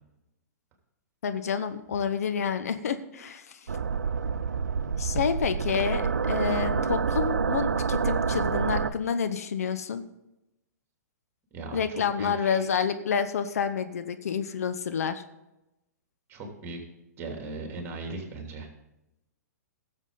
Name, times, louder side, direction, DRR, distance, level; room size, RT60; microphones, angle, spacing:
voice 1, 1.2-3.7 5.0-10.0 11.7-15.2, left 7 dB, 60° left, 10 dB, 0.8 m, -29 dB
sound 1, 3.7-8.9, right 5 dB, 70° right, 0.6 m, -27 dB
voice 2, 11.5-12.7 16.3-16.8 17.2-18.7, right 3 dB, 25° right, 2 dB, 3.1 m, -38 dB
17.5 x 7.3 x 4.0 m, 0.93 s
figure-of-eight pair, 115°, 9 cm